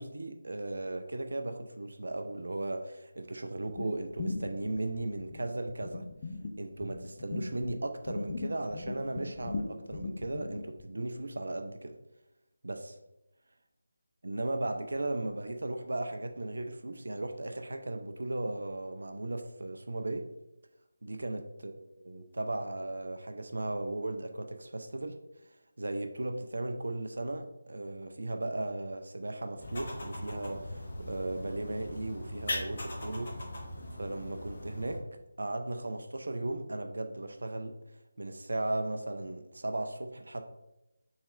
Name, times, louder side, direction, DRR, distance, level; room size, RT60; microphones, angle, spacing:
voice 1, 0.0-6.0 6.6-12.0 12.6-13.0 14.2-20.3 21.0-21.8 22.0-25.1 25.8-33.4 34.0-37.8 38.2-40.4, right 2 dB, 65° right, 6 dB, 0.4 m, -36 dB
sound 1, 3.8-7.7 8.0-10.8, left 3 dB, 30° left, 0.4 m, -39 dB
sound 2, 29.6-35.0, left 1 dB, 45° left, 0.8 m, -40 dB
4.1 x 3.2 x 2.4 m, 0.93 s
figure-of-eight pair, 160°, 0 cm